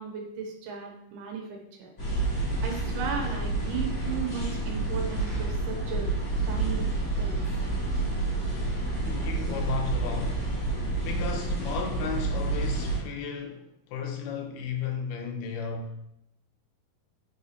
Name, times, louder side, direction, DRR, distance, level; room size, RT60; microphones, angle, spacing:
voice 1, 0.0-1.9 2.6-6.1 6.5-6.8 7.2-7.4, right 6 dB, 85° right, 1 dB, 2.3 m, -35 dB
sound 1, 2.0-13.0, right 2 dB, 30° left, 1.3 m, -29 dB
voice 2, 9.0-10.6 11.0-16.2, left 6 dB, 80° left, 3 dB, 2.1 m, -35 dB
4.8 x 3.4 x 2.7 m, 0.79 s
omnidirectional pair, 3.9 m